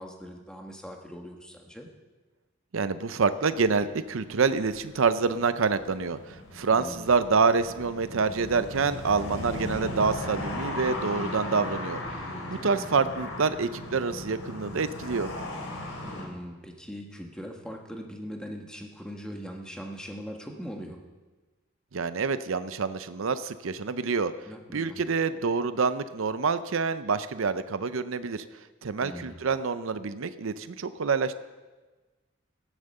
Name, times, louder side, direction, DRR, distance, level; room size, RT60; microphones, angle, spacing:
voice 1, 0.0-1.9 6.6-7.1 12.4-12.8 16.0-21.0 24.5-25.0 29.0-29.4, equal, 5° left, 2 dB, 1.4 m, -41 dB
voice 2, 2.7-12.0 12.5-15.3 21.9-24.3 24.7-28.4 28.8-31.3, right 5 dB, 80° right, 12 dB, 0.6 m, -27 dB
sound 1, 3.3-16.3, left 1 dB, 90° left, 4.0 m, -37 dB
15.0 x 11.0 x 6.7 m, 1.3 s
head